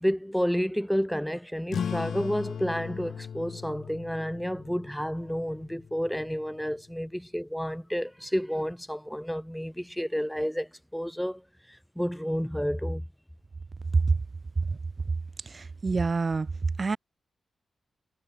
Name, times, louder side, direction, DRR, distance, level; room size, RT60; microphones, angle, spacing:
voice 1, 0.0-11.4 12.0-13.0, equal, ahead, 1.1 m, -30 dB
sound 1, 1.7-6.8, left 7 dB, 75° left, 2.1 m, -38 dB
voice 2, 15.4-16.5 16.8-17.0, right 4 dB, 40° right, 0.5 m, -27 dB
cardioid pair, 95°, 0 cm